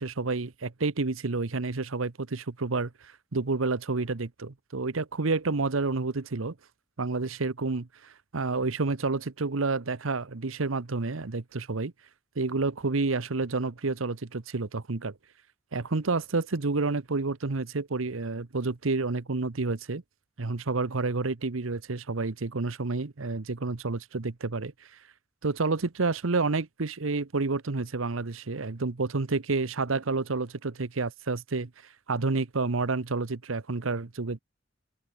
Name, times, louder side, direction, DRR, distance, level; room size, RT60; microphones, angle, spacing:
voice 1, 0.0-6.5 7.0-11.9 12.4-15.1 15.7-20.0 20.4-24.7 25.4-31.7 32.1-34.4, right 3 dB, 85° right, 1.0 m, -29 dB
open air
head